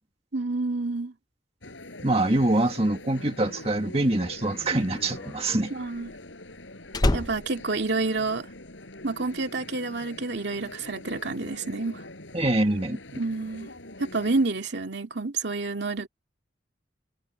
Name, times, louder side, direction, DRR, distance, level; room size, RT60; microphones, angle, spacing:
voice 1, 0.3-1.1 5.7-6.1 7.1-8.5 9.0-12.0 13.1-13.7 14.0-16.1, right 3 dB, 65° right, 2.4 m, -29 dB
sound 1, 1.6-14.5, left 2 dB, 85° left, 6.9 m, -44 dB
voice 2, 2.0-5.7 12.3-13.0, right 2 dB, 30° right, 1.9 m, -24 dB
Slam, 4.0-8.7 9.0-9.4, left 1 dB, 20° left, 0.6 m, -30 dB
head